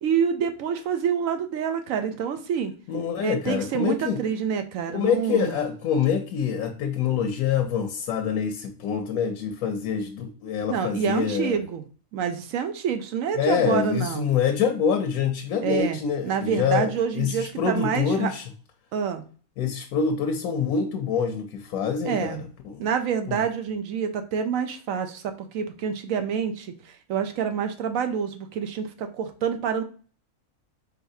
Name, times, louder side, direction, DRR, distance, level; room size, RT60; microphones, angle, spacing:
voice 1, 0.0-2.7 3.2-5.6 10.7-11.8 12.1-14.3 15.6-16.0 16.2-18.3 18.9-19.2 22.0-22.4 22.8-29.8, right 7 dB, 75° right, 7 dB, 1.0 m, -27 dB
voice 2, 2.9-4.2 4.9-11.6 13.3-18.4 19.6-22.4 22.7-22.9 23.3-23.4, left 7 dB, 85° left, 5 dB, 1.1 m, -26 dB
4.1 x 4.0 x 2.6 m, 0.38 s
omnidirectional pair, 1.5 m